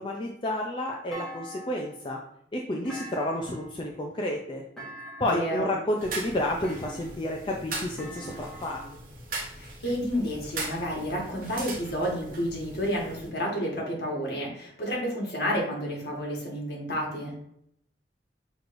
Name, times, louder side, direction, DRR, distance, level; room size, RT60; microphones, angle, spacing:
voice 1, 0.0-2.2 2.5-4.6 5.2-8.8, left 1 dB, 30° left, 0 dB, 0.4 m, -30 dB
Thump thud, 1.1-2.0 2.8-3.8 4.8-5.5 6.6-7.3 8.0-9.0, equal, 5° left, 1.4 m, -43 dB
voice 2, 5.2-5.7 9.6-17.3, equal, 65° left, -2 dB, 1.4 m, -30 dB
sound 1, 6.0-13.3, right 2 dB, 50° right, 0.9 m, -39 dB
6.3 x 3.0 x 2.5 m, 0.72 s
head